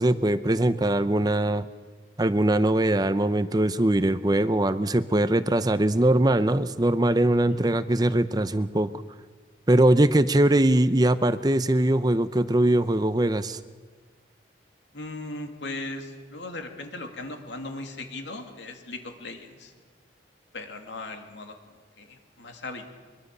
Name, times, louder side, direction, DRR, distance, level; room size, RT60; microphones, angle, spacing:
voice 1, 0.0-1.7 2.2-8.9 9.7-13.6, right 1 dB, 20° right, 13 dB, 0.7 m, -22 dB
voice 2, 7.5-7.8 14.9-19.7 20.5-21.5 22.0-22.9, left 2 dB, 85° left, 4 dB, 2.8 m, -38 dB
23.0 x 23.0 x 6.8 m, 1.5 s
head